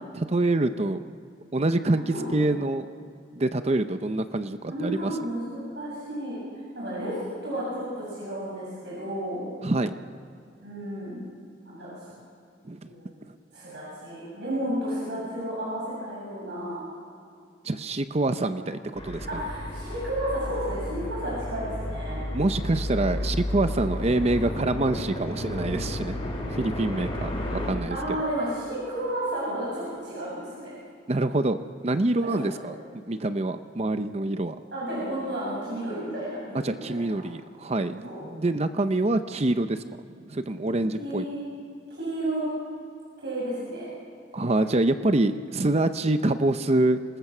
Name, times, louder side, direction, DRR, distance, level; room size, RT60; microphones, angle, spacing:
voice 1, 0.1-1.0 1.5-2.9 3.3-5.1 9.6-10.0 12.6-12.9 17.6-19.3 22.3-26.2 26.5-28.0 31.1-32.7 33.1-34.6 36.5-39.8 40.3-41.2 44.3-47.0, right 2 dB, 35° right, 10 dB, 0.7 m, -26 dB
voice 2, 1.9-2.4 4.7-6.4 6.7-9.5 10.6-11.2 11.7-11.9 12.8-13.1 13.5-16.8 18.6-18.7 19.3-22.2 23.8-23.9 27.9-30.7 32.3-32.7 34.7-37.2 38.0-38.2 40.9-41.4 41.9-42.5 43.2-43.9, right 1 dB, 70° right, -6 dB, 7.6 m, -32 dB
sound 1, 18.9-27.7, left 1 dB, 30° left, 4.8 m, -32 dB
26.5 x 20.5 x 6.1 m, 2.4 s
head